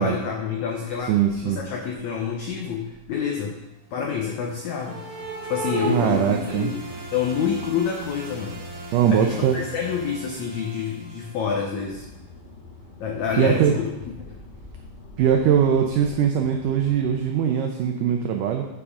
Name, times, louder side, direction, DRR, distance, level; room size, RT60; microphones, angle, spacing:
voice 1, 0.0-3.6 3.9-5.0 5.5-6.8 7.1-8.6 9.1-12.0 13.0-13.9 14.3-14.4, left 7 dB, 85° left, 1 dB, 1.6 m, -28 dB
voice 2, 1.1-1.6 5.9-6.7 8.9-9.6 13.4-13.7 15.2-18.7, right 8 dB, 90° right, 4 dB, 1.8 m, -21 dB
sound 1, 2.0-3.2 4.7-10.8 12.1-12.2 12.8-12.9 13.9-16.1, right 3 dB, 25° right, 0.4 m, -38 dB
sound 2, 3.9-12.1, right 2 dB, 55° right, 1.0 m, -41 dB
sound 3, 11.7-17.3, left 3 dB, 65° left, 4.0 m, -46 dB
7.4 x 7.1 x 5.0 m, 0.98 s
omnidirectional pair, 4.5 m